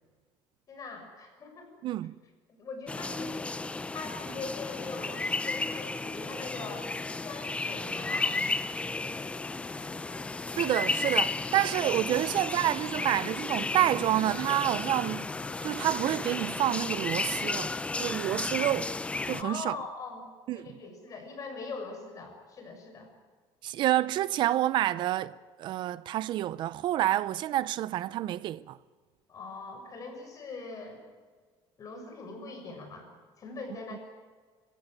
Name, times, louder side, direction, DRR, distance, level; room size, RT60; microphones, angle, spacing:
voice 1, 0.7-1.7 2.5-3.5 3.9-6.9 7.2-8.8 19.4-20.3 20.5-23.1 29.3-31.0 31.8-33.1 33.4-34.0, left 4 dB, 35° left, 6.3 m, -42 dB
voice 2, 1.8-2.1 10.6-15.3 15.6-17.7 18.0-18.9 19.3-19.8 20.5-20.6 23.6-25.3 25.6-28.8 33.9-34.0, right 13 dB, 55° right, 0.6 m, -28 dB
sound 1, 2.9-19.4, left 3 dB, 10° left, 0.7 m, -33 dB
25.5 x 16.0 x 9.3 m
cardioid pair, 140°, 10 cm